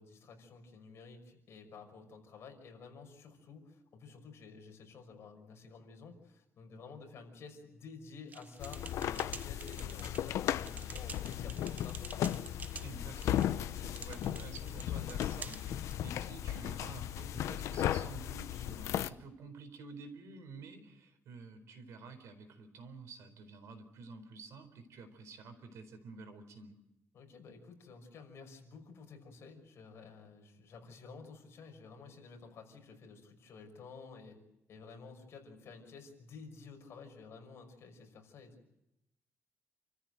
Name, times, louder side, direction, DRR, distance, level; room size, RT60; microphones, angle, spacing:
voice 1, 0.0-12.0 27.1-34.4 34.7-38.6, left 4 dB, 60° left, 3 dB, 5.8 m, -52 dB
sound 1, 8.3-16.0, right 5 dB, 35° right, 0.8 m, -50 dB
sound 2, 8.6-19.1, left 11 dB, 85° left, 0.8 m, -36 dB
voice 2, 12.8-26.7, right 4 dB, 75° right, 9 dB, 4.2 m, -50 dB
29.0 x 14.5 x 9.2 m, 0.87 s
cardioid pair, 155°, 5 cm